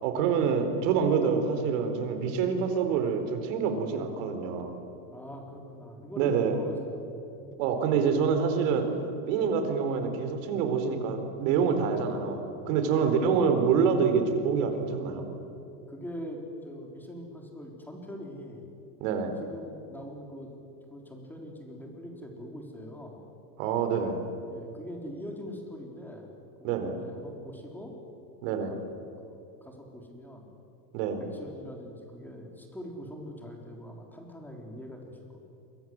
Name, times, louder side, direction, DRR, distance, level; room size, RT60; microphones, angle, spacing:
voice 1, 0.0-4.7 6.2-6.5 7.6-8.9 9.3-15.3 19.0-19.3 23.6-24.2 26.6-27.0 28.4-28.8 30.9-31.3, right 6 dB, 55° right, 7 dB, 4.4 m, -26 dB
voice 2, 5.1-7.4 11.9-12.1 12.9-13.3 15.9-18.7 19.4-20.5 20.9-23.2 24.5-26.3 26.6-27.9 28.7-28.8 29.2-30.5 31.2-35.4, equal, 5° left, 1 dB, 3.9 m, -43 dB
28.5 x 24.5 x 7.9 m, 2.8 s
supercardioid pair, 160°, 47 cm